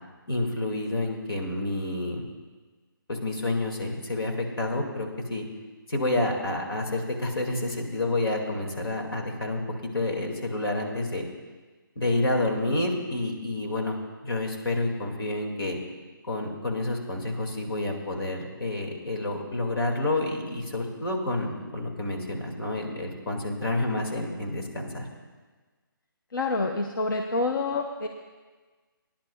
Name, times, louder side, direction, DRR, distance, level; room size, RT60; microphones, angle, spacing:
voice 1, 0.3-2.2 3.1-5.4 5.9-11.3 12.0-14.0 14.2-15.8 16.3-25.1, left 2 dB, 90° left, 1 dB, 2.3 m, -29 dB
voice 2, 26.3-28.1, left 3 dB, 65° left, 4 dB, 0.7 m, -27 dB
19.5 x 10.5 x 2.4 m, 1.4 s
hypercardioid pair, 180°, 12 cm